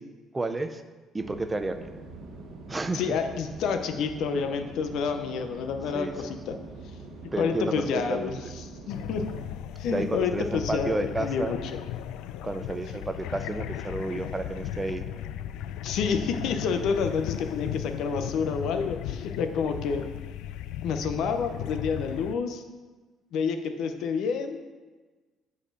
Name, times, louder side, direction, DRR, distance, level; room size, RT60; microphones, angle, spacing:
voice 1, 0.3-0.8 1.1-1.9 2.7-3.2 5.9-6.3 7.3-8.3 9.9-11.6 12.4-15.1, right 2 dB, 10° right, 8 dB, 0.4 m, -31 dB
sound 1, 1.2-9.5, right 3 dB, 60° right, 1.3 m, -44 dB
voice 2, 2.9-6.6 7.4-8.4 8.9-9.3 9.8-11.8 15.8-20.1 20.8-22.6 23.3-24.6, left 5 dB, 60° left, 7 dB, 0.7 m, -29 dB
sound 2, 8.9-22.3, left 11 dB, 90° left, 0.3 m, -36 dB
7.6 x 4.2 x 6.5 m, 1.3 s
cardioid pair, 165°, 0 cm